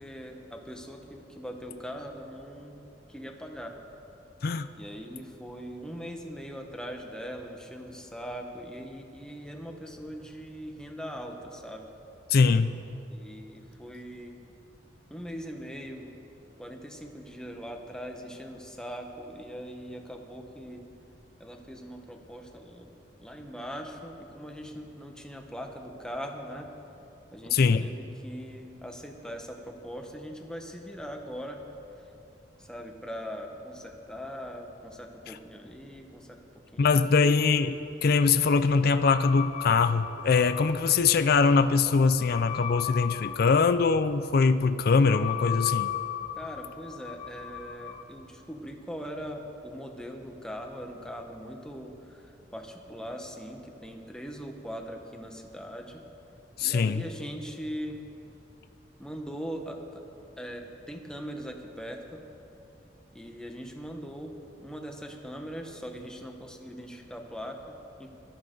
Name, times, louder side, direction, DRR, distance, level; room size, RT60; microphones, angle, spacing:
voice 1, 0.0-2.8 3.1-3.7 4.8-11.9 13.1-14.3 15.1-16.1 16.6-20.8 21.4-22.9 23.2-26.7 27.3-31.6 32.6-36.4 36.7-37.4 46.4-56.0 56.6-58.0 59.0-60.1 60.4-62.2 63.1-64.3 64.6-68.1, equal, 5° left, 2 dB, 1.2 m, -41 dB
voice 2, 12.3-12.8 27.5-27.9 35.3-35.4 36.8-37.7 38.0-45.9 56.6-57.0, left 4 dB, 55° left, 11 dB, 0.4 m, -22 dB
sound 1, 38.9-48.0, left 11 dB, 35° left, 0.9 m, -37 dB
20.5 x 13.0 x 3.9 m, 2.8 s
head